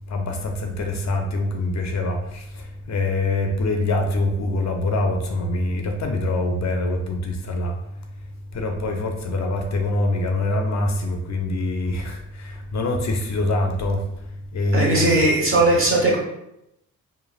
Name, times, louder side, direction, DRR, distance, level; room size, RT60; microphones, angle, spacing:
voice 1, 0.1-2.4 2.9-7.7 8.5-14.0 14.5-15.2, left 2 dB, 50° left, 3 dB, 0.5 m, -24 dB
voice 2, 14.7-16.2, right 2 dB, 35° right, -3 dB, 1.1 m, -18 dB
3.2 x 2.0 x 2.3 m, 0.84 s
cardioid pair, 65°, 35 cm